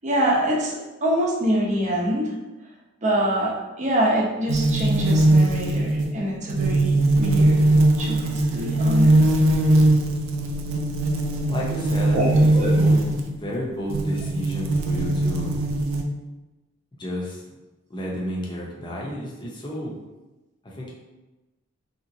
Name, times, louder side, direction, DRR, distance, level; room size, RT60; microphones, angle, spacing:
voice 1, 0.0-2.3 3.0-7.6 8.0-9.3 12.1-12.7, equal, 35° right, -3 dB, 0.7 m, -25 dB
sound 1, 4.5-13.3 13.9-16.0, right 1 dB, 85° right, 0.4 m, -20 dB
voice 2, 11.5-13.0 13.2-15.6 17.0-17.4 17.9-19.9 20.6-20.9, equal, 25° left, -3 dB, 0.7 m, -31 dB
3.4 x 2.9 x 2.6 m, 1.1 s
head